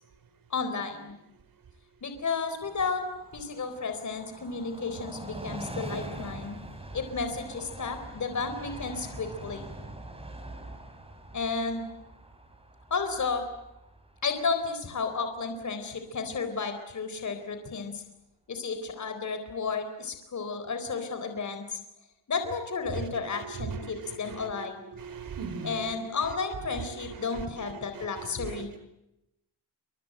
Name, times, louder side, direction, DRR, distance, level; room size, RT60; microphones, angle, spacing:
voice 1, 0.5-1.1 2.0-3.0 3.3-6.6 6.9-9.7 11.3-11.9 12.9-13.4 14.2-18.0 18.5-21.8 22.3-24.9 25.6-28.7, left 4 dB, 45° left, 8 dB, 4.1 m, -32 dB
Train, 2.3-15.6 16.0-16.1, right 1 dB, 15° right, 5.2 m, -43 dB
voice 2, 23.3-24.7 24.9-26.0 26.9-28.8, right 5 dB, 50° right, 11 dB, 4.9 m, -39 dB
29.0 x 25.5 x 8.0 m, 0.88 s
wide cardioid pair, 155°, 42 cm